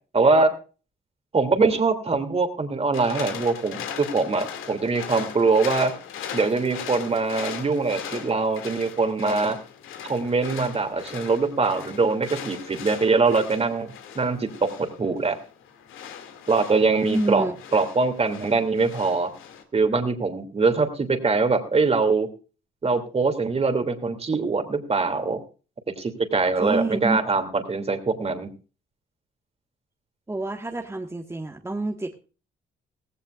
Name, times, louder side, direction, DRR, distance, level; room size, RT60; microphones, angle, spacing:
voice 1, 0.1-0.5 1.3-5.9 6.3-9.6 10.0-15.4 16.5-17.5 17.7-19.3 19.7-22.3 22.8-25.4 26.0-28.5, right 4 dB, 30° right, 7 dB, 2.8 m, -23 dB
sound 1, 2.9-19.6, left 8 dB, 85° left, 2.5 m, -39 dB
voice 2, 17.1-17.6 26.6-27.2 30.3-32.1, right 2 dB, 15° right, 2 dB, 1.6 m, -28 dB
17.0 x 16.5 x 2.5 m, 0.35 s
cardioid pair, 90°, 20 cm